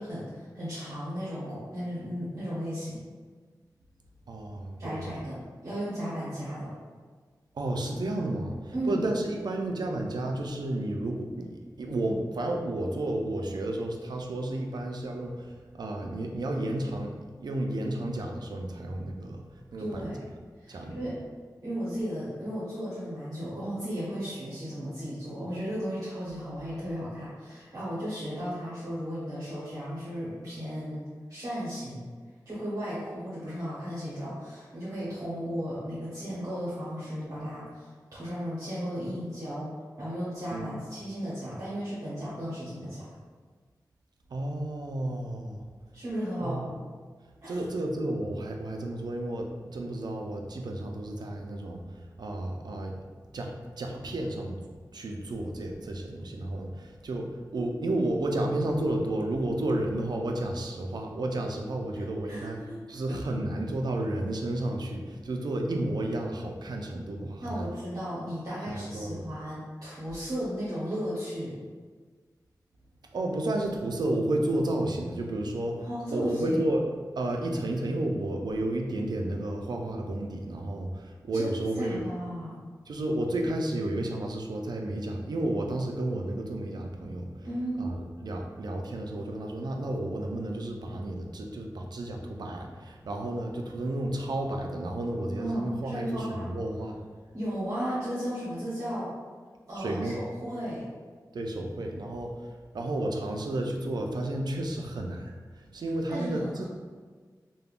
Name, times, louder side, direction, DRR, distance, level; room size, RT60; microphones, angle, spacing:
voice 1, 0.0-3.0 4.8-6.7 8.7-9.0 19.8-20.2 20.6-21.1 21.6-32.0 32.5-39.7 40.0-43.0 45.9-46.8 47.4-47.6 61.9-62.8 63.1-63.2 67.4-71.6 75.8-76.6 81.3-82.5 87.4-87.9 95.4-96.5 97.3-99.1 99.7-100.8 106.1-106.6, equal, 50° right, -11 dB, 0.9 m, -35 dB
voice 2, 4.3-5.2 7.5-19.4 19.7-20.1 20.7-21.0 40.5-40.8 44.3-45.6 46.4-46.7 47.5-53.0 53.3-54.6 54.9-62.6 62.9-67.6 68.7-69.3 73.1-76.9 77.2-82.1 82.9-87.3 87.8-97.0 99.8-100.2 101.3-106.6, right 1 dB, 70° right, 2 dB, 0.4 m, -32 dB
3.4 x 2.1 x 2.4 m, 1.5 s
wide cardioid pair, 95°, 7 cm